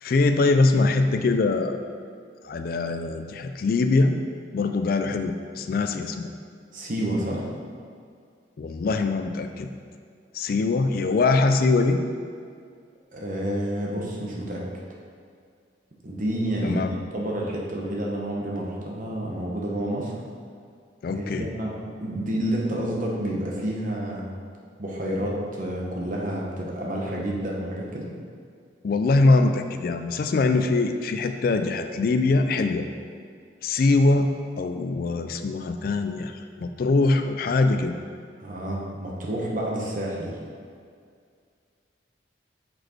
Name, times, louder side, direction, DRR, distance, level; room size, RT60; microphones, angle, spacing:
voice 1, 0.0-1.8 2.4-4.2 4.5-6.3 8.6-9.7 10.3-12.0 16.6-16.9 21.0-21.5 28.8-32.9 33.6-34.3 34.6-37.9, left 3 dB, 50° left, 7 dB, 0.3 m, -22 dB
voice 2, 6.7-7.5 13.1-14.6 16.0-16.8 17.1-20.1 21.1-24.3 24.8-28.1 38.4-40.4, right 1 dB, 45° right, -3 dB, 1.1 m, -29 dB
6.0 x 5.2 x 4.4 m, 2.2 s
head